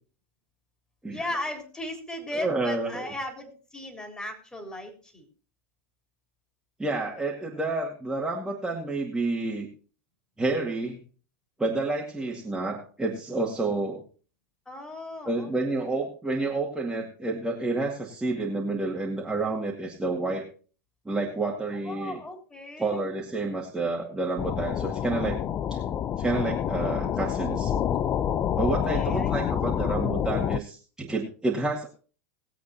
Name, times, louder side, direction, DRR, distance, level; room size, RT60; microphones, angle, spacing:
voice 1, 1.1-5.3 14.7-15.5 21.8-23.0 28.9-29.3, left 1 dB, 10° left, 2 dB, 3.8 m, -36 dB
voice 2, 2.3-3.0 6.8-9.7 10.4-11.0 11.6-14.0 15.3-20.4 21.1-22.2 22.8-25.4 25.7-25.8 26.2-27.7 28.6-31.9, right 2 dB, 10° right, -3 dB, 2.3 m, -29 dB
sound 1, 24.4-30.6, left 9 dB, 30° left, 0.6 m, -28 dB
20.0 x 8.3 x 2.9 m, 0.39 s
hypercardioid pair, 90°, 8 cm